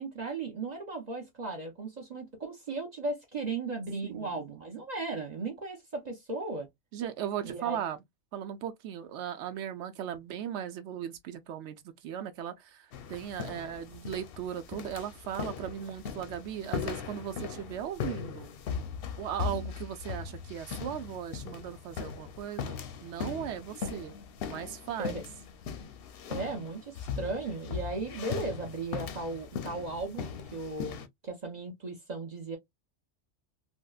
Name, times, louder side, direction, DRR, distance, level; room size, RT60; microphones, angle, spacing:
voice 1, 0.0-6.7 7.4-7.8 25.0-25.2 26.3-32.6, right 3 dB, 40° right, 0.8 m, -36 dB
voice 2, 4.0-4.5 6.9-8.0 8.3-18.5 19.2-24.1 24.5-25.2, right 9 dB, 75° right, 0.9 m, -37 dB
sound 1, 12.9-31.1, left 7 dB, 60° left, 0.7 m, -39 dB
3.6 x 2.1 x 2.3 m
omnidirectional pair, 1.2 m